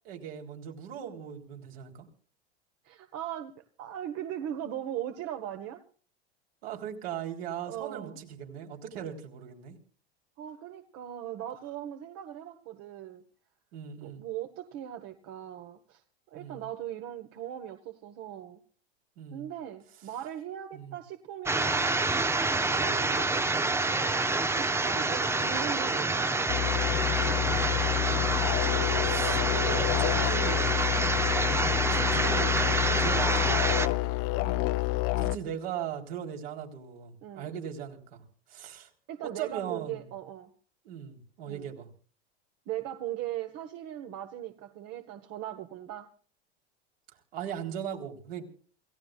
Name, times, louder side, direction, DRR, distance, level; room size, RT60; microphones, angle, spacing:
voice 1, 0.0-2.1 6.6-9.8 13.7-14.2 16.3-16.7 19.2-19.5 20.7-21.0 22.8-23.0 27.7-28.6 29.1-30.8 31.9-34.1 35.2-38.2 38.5-38.9 39.2-40.1 40.8-41.9 47.3-48.4, right 8 dB, 70° right, 2 dB, 3.9 m, -39 dB
voice 2, 2.8-5.8 7.6-8.2 10.4-13.2 14.0-18.6 19.3-21.9 22.5-26.9 30.9-31.3 32.9-33.2 34.3-34.7 37.2-37.5 39.1-40.5 41.4-41.7 42.7-46.1, right 11 dB, 50° right, 8 dB, 1.5 m, -39 dB
sound 1, 21.5-33.9, right 3 dB, 10° right, 0.7 m, -27 dB
Didge for anything, 26.5-35.4, left 20 dB, 50° left, 0.7 m, -28 dB
28.0 x 15.5 x 2.5 m, 0.42 s
hypercardioid pair, 100°, 31 cm